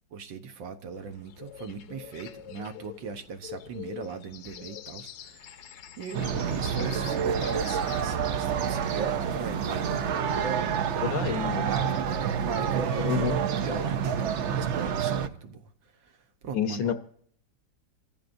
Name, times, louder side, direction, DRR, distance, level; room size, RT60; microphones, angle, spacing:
voice 1, 0.1-5.7 6.0-10.0 10.3-10.8 11.6-15.7 16.0-16.1 16.4-16.9, right 5 dB, 85° right, 1.8 m, -38 dB
sound 1, 0.9-8.0, left 10 dB, 80° left, 1.4 m, -45 dB
sound 2, 6.1-15.3, right 7 dB, 65° right, 0.7 m, -28 dB
voice 2, 11.0-11.7 13.0-13.4 16.5-16.9, left 8 dB, 60° left, 1.1 m, -28 dB
27.0 x 14.5 x 2.6 m
omnidirectional pair, 2.0 m